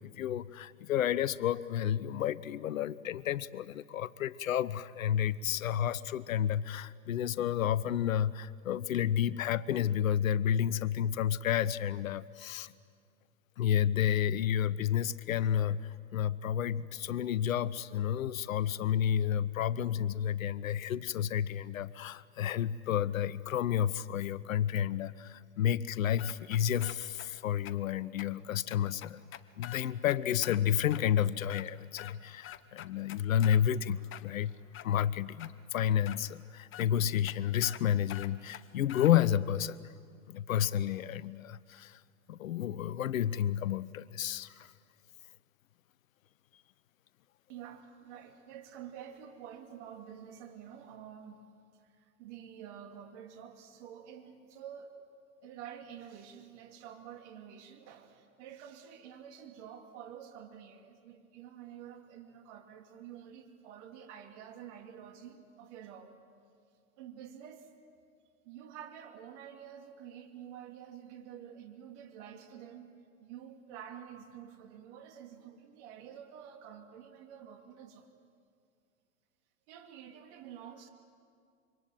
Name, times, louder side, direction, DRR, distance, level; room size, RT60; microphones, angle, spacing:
voice 1, 0.1-12.7 13.6-29.3 29.6-34.5 34.8-39.9 40.3-42.0 42.3-44.7, left 10 dB, 75° left, 19 dB, 0.8 m, -31 dB
sound 1, 26.2-27.3 27.7-27.8 28.2-28.3 28.7-30.6 30.9-31.0 31.4-32.2 32.4-33.6 34.0-34.9 35.4-35.5 36.1-36.2 36.7-36.9 37.2-37.3 37.6-37.8 38.1-39.1, left 12 dB, 30° left, 1.1 m, -46 dB
voice 2, 47.5-51.5 51.8-55.0 55.4-66.1 67.0-67.7 68.4-78.1 79.7-80.9, right 9 dB, 55° right, 5 dB, 3.0 m, -49 dB
26.5 x 24.5 x 9.2 m, 2.2 s
hypercardioid pair, 100°, 41 cm